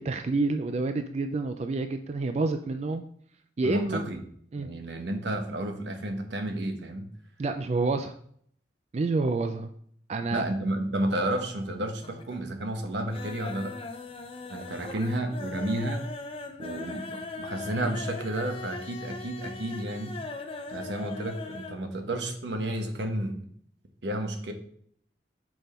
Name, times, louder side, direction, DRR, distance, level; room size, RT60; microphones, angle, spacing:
voice 1, 0.0-3.0 3.6-4.0 4.5-4.7 7.4-8.1 8.9-9.7 10.1-10.5 14.6-14.7 15.5-15.6, right 3 dB, 40° right, 8 dB, 0.4 m, -28 dB
voice 2, 3.6-4.2 4.6-7.0 10.3-13.7 14.5-16.1 16.6-20.2 20.7-23.4 24.0-24.5, right 1 dB, 80° right, 5 dB, 1.1 m, -31 dB
sound 1, 11.1-11.7 12.0-12.5 12.8-21.8 22.1-22.2 22.5-22.6, left 3 dB, 30° left, 0.6 m, -40 dB
6.2 x 5.2 x 4.3 m, 0.63 s
head